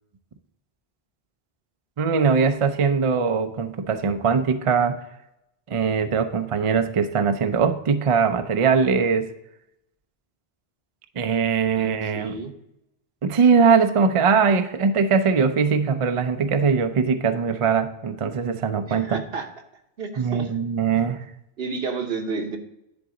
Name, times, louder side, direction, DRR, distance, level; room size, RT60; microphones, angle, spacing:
voice 1, 2.0-5.0 5.7-9.3 11.2-12.4 13.2-19.2 20.2-21.3, right 5 dB, 45° right, 9 dB, 0.4 m, -21 dB
voice 2, 11.7-12.5 18.9-19.5 20.0-20.5 21.6-22.6, right 4 dB, 70° right, 5 dB, 1.2 m, -31 dB
10.5 x 3.9 x 3.7 m, 0.86 s
omnidirectional pair, 1.1 m